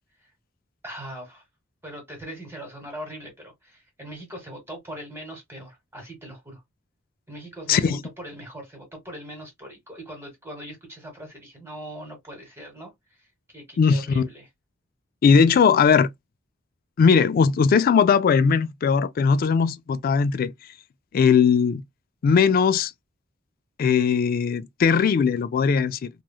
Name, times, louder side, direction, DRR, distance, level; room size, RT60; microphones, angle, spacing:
voice 1, 0.8-1.4 1.8-6.6 7.3-12.9 13.2-13.3 13.5-14.5, right 1 dB, 15° right, 1.3 m, -40 dB
voice 2, 7.7-8.0 13.8-14.3 15.2-16.1 17.0-20.5 21.1-21.8 22.2-22.9 23.8-26.1, left 6 dB, 45° left, 0.3 m, -19 dB
3.1 x 2.3 x 2.3 m
head